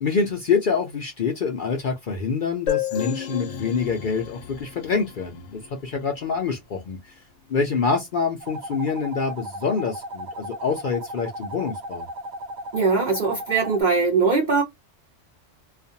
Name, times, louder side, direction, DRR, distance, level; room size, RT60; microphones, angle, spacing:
voice 1, 0.0-7.1 7.5-12.1, left 5 dB, 55° left, 0.6 m, -26 dB
sound 1, 2.7-6.2, left 12 dB, 80° left, 0.9 m, -32 dB
sound 2, 8.4-13.8, equal, 75° right, 0.9 m, -36 dB
voice 2, 12.7-14.6, right 4 dB, 45° right, 0.7 m, -21 dB
2.4 x 2.2 x 2.6 m
omnidirectional pair, 1.3 m